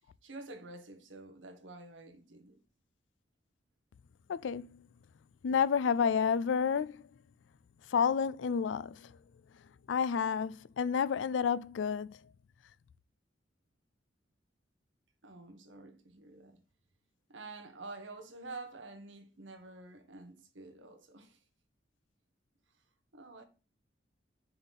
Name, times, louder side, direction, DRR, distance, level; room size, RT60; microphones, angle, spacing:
voice 1, 0.2-2.6 15.2-16.6 17.3-21.4 23.1-23.4, right 3 dB, 90° right, 1.3 m, -48 dB
voice 2, 4.3-4.8 5.4-7.0 7.9-8.9 9.9-12.1, left 6 dB, 80° left, 0.4 m, -30 dB
6.6 x 4.1 x 4.0 m
head